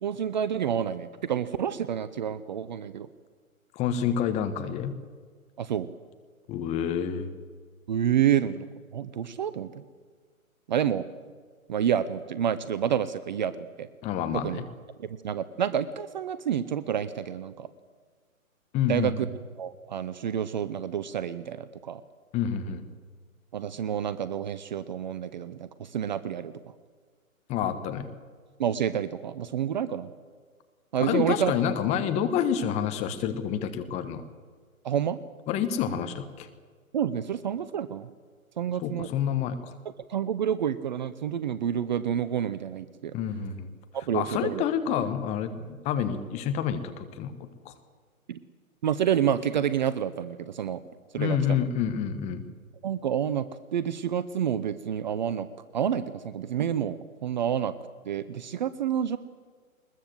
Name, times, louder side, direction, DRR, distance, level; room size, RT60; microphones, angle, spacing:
voice 1, 0.0-3.1 5.6-5.9 7.9-9.8 10.7-11.0 11.7-13.9 14.3-14.6 15.0-17.7 18.9-19.3 19.6-22.0 23.5-26.5 28.6-30.1 30.9-31.5 34.8-35.2 36.9-38.1 38.6-39.1 39.8-43.1 43.9-44.6 48.3-48.4 48.8-50.8 51.1-51.7 52.8-53.4 53.7-55.5 55.7-57.7 58.0-59.2, right 9 dB, 35° right, 15 dB, 0.7 m, -29 dB
voice 2, 3.7-5.0 6.5-7.3 14.0-14.6 18.7-19.2 22.3-22.8 27.5-28.1 31.0-34.2 35.5-36.5 38.8-39.7 43.1-43.7 44.1-47.3 47.6-47.7 51.2-52.4, left 8 dB, 15° left, 10 dB, 1.2 m, -28 dB
22.0 x 21.0 x 7.9 m, 1.5 s
figure-of-eight pair, 135°, 42 cm